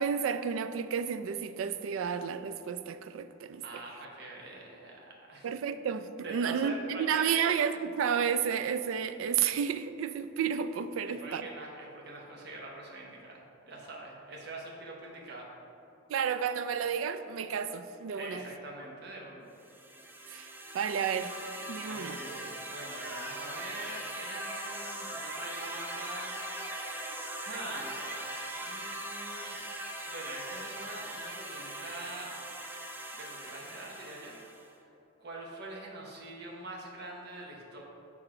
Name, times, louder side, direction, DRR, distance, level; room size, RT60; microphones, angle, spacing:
voice 1, 0.0-3.6 5.4-11.4 16.1-18.4 20.3-20.5 20.7-21.3 21.7-22.2, right 7 dB, 90° right, 11 dB, 0.3 m, -31 dB
voice 2, 3.6-5.5 6.2-7.5 11.0-15.5 18.2-19.5 21.9-26.4 27.4-28.1 28.6-29.6 30.1-32.3 33.1-34.4 35.2-37.8, right 2 dB, 55° right, -2 dB, 0.9 m, -44 dB
sound 1, 19.6-34.7, right 1 dB, 10° right, 0.4 m, -40 dB
6.5 x 3.6 x 4.8 m, 2.9 s
head